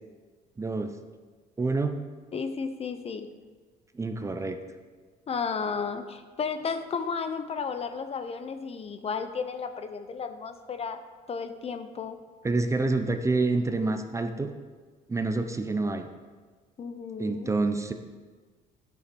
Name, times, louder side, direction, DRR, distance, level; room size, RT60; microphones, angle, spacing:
voice 1, 0.6-0.9 1.6-2.0 3.9-4.6 12.4-14.5 15.1-16.1 17.2-17.9, right 3 dB, 15° right, 7 dB, 0.7 m, -27 dB
voice 2, 2.3-3.3 5.3-11.0 11.3-12.2 16.8-17.5, left 5 dB, 35° left, 9 dB, 0.7 m, -33 dB
9.7 x 7.1 x 5.3 m, 1.4 s
cardioid pair, 110°, 17 cm